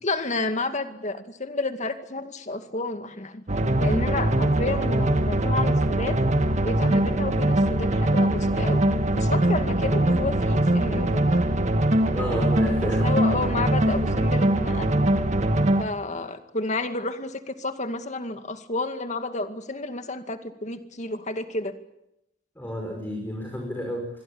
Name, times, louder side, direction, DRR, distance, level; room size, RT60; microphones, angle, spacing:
voice 1, 0.0-3.4 3.8-6.2 6.6-11.6 13.0-14.9 15.8-21.7, left 2 dB, 40° left, 8 dB, 2.2 m, -31 dB
sound 1, 3.5-15.8, right 1 dB, 40° right, 1.7 m, -22 dB
voice 2, 12.1-13.0 13.7-13.9 22.6-24.1, equal, 10° left, 2 dB, 5.5 m, -31 dB
26.0 x 22.5 x 8.7 m, 0.84 s
head